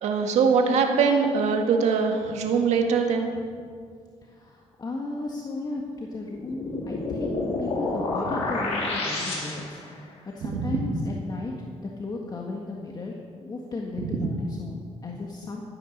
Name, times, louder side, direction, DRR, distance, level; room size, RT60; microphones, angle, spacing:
voice 1, 0.0-3.3 10.5-10.8 14.0-14.3, right 5 dB, 80° right, 3 dB, 1.8 m, -23 dB
voice 2, 4.2-11.5 12.0-15.6, left 2 dB, 35° left, -1 dB, 1.7 m, -35 dB
sound 1, 6.3-9.9, left 2 dB, 70° left, 4.2 m, -29 dB
14.0 x 9.3 x 6.6 m, 2.1 s
cardioid pair, 85°, 11 cm